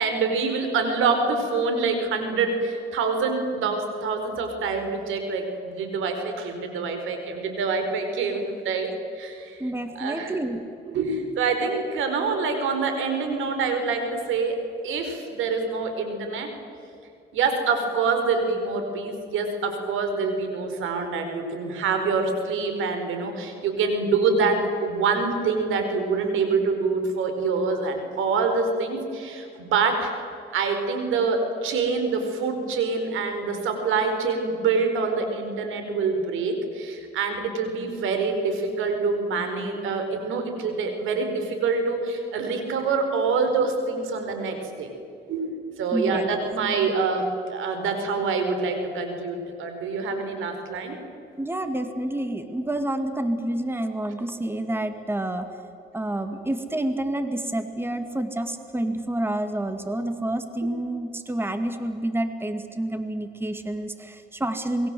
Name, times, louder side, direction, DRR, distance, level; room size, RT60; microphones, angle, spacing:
voice 1, 0.0-8.9 9.1-9.6 9.9-10.3 10.9-16.5 17.3-30.1 30.5-44.9 45.3-51.0, right 4 dB, 85° right, 6 dB, 4.8 m, -26 dB
voice 2, 9.6-10.6 45.9-46.3 51.4-55.5 55.9-64.9, right 1 dB, 10° right, 7 dB, 2.3 m, -28 dB
27.5 x 22.0 x 7.9 m, 2.6 s
cardioid pair, 90°, 20 cm